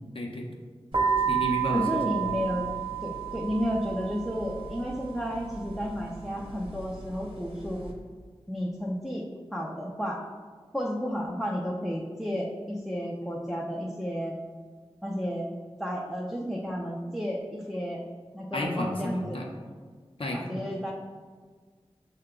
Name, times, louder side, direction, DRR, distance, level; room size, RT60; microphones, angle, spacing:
voice 1, 0.1-0.5 1.3-2.3 18.5-19.5 20.2-20.6, left 1 dB, 55° left, 0 dB, 0.7 m, -32 dB
sound 1, 0.9-7.9, right 7 dB, 55° right, 0.8 m, -32 dB
voice 2, 1.7-2.7 3.0-7.9 8.5-9.3 9.5-10.2 10.7-14.4 15.0-15.5 15.8-18.0 18.3-19.4 20.3-20.9, equal, ahead, -3 dB, 0.5 m, -32 dB
6.5 x 2.2 x 3.7 m, 1.5 s
wide cardioid pair, 55°, 11 cm